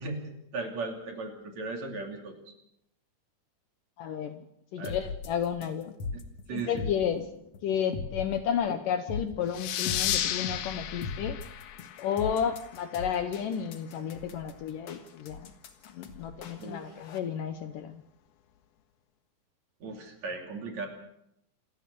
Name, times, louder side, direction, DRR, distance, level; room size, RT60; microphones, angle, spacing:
voice 1, 0.0-2.3 4.8-5.0 6.1-6.2 6.5-6.9 16.6-16.8 19.8-20.9, right 3 dB, 45° right, 3 dB, 3.7 m, -37 dB
voice 2, 4.0-4.4 4.7-5.9 6.5-7.3 7.6-11.4 12.0-15.5 15.9-18.0, left 8 dB, 70° left, 9 dB, 2.3 m, -32 dB
sound 1, 4.8-17.2, left 4 dB, 50° left, 2.1 m, -39 dB
sound 2, 9.5-12.8, left 11 dB, 90° left, 3.2 m, -33 dB
28.0 x 14.0 x 7.0 m, 0.80 s
omnidirectional pair, 4.6 m